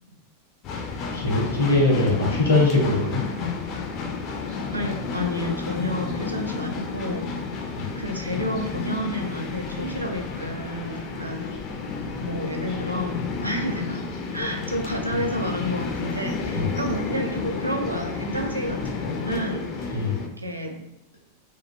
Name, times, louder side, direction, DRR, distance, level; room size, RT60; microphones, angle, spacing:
sound 1, 0.6-20.3, left 4 dB, 35° left, 0.3 m, -31 dB
voice 1, 1.1-3.2 7.7-7.9 16.5-16.7 19.9-20.2, left 2 dB, 70° left, -2 dB, 0.7 m, -21 dB
voice 2, 4.7-7.6 8.0-11.5 12.2-20.8, equal, 85° right, 2 dB, 0.3 m, -30 dB
2.3 x 2.2 x 2.5 m, 0.87 s
figure-of-eight pair, 90°, 0 cm